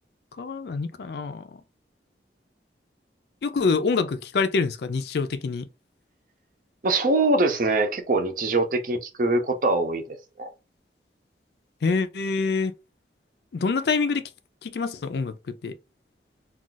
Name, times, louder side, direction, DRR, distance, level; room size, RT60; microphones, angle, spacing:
voice 1, 0.4-1.5 3.4-5.7 11.8-12.7 13.5-14.2 14.6-15.7, left 4 dB, 65° left, 0.4 m, -26 dB
voice 2, 6.8-10.5, right 2 dB, 50° right, 0.6 m, -23 dB
2.4 x 2.3 x 3.8 m
head